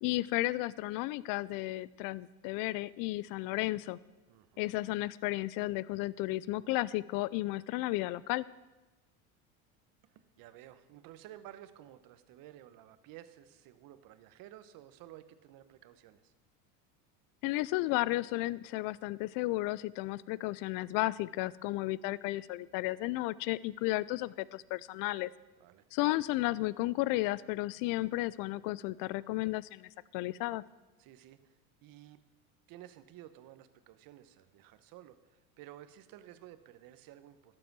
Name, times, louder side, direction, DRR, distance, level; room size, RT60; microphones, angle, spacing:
voice 1, 0.0-4.0 4.6-8.5 17.4-25.3 25.9-30.6, left 18 dB, 50° left, 21 dB, 0.5 m, -33 dB
voice 2, 4.3-4.6 10.0-16.3 25.6-25.8 31.0-32.2 32.7-37.6, right 12 dB, 50° right, 12 dB, 1.0 m, -53 dB
12.0 x 7.7 x 6.0 m, 1.1 s
supercardioid pair, 100°, 42 cm